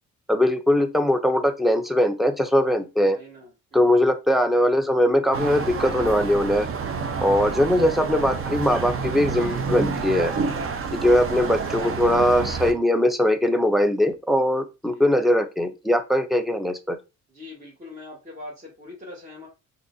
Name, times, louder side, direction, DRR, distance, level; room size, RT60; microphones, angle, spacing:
voice 1, 0.3-3.2 3.7-6.7 7.2-10.3 10.9-17.0, left 1 dB, ahead, 9 dB, 0.5 m, -21 dB
voice 2, 3.0-4.1 7.4-7.6 10.9-11.2 14.9-15.1 17.3-19.5, left 2 dB, 25° right, -4 dB, 1.6 m, -43 dB
sound 1, 5.3-12.7, right 5 dB, 45° right, 0.7 m, -29 dB
3.7 x 2.8 x 2.7 m, 0.27 s
cardioid pair, 90°, 30 cm